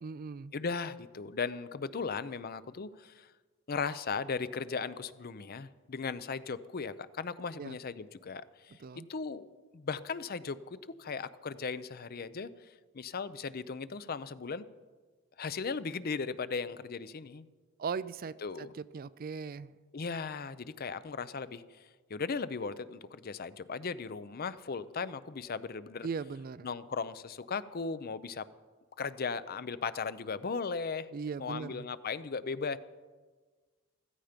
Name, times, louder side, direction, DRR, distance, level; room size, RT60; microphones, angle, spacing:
voice 1, 0.0-0.5 7.6-7.8 8.8-9.1 17.8-19.7 26.0-26.7 31.1-31.9, right 5 dB, 45° right, 17 dB, 0.4 m, -39 dB
voice 2, 0.5-3.3 3.7-9.5 9.7-10.6 11.0-12.5 12.9-14.7 15.4-17.5 18.4-18.7 19.9-26.1 26.6-28.5 29.0-31.1 31.4-32.8, left 5 dB, 45° left, 15 dB, 0.6 m, -37 dB
15.5 x 14.5 x 5.1 m, 1.4 s
head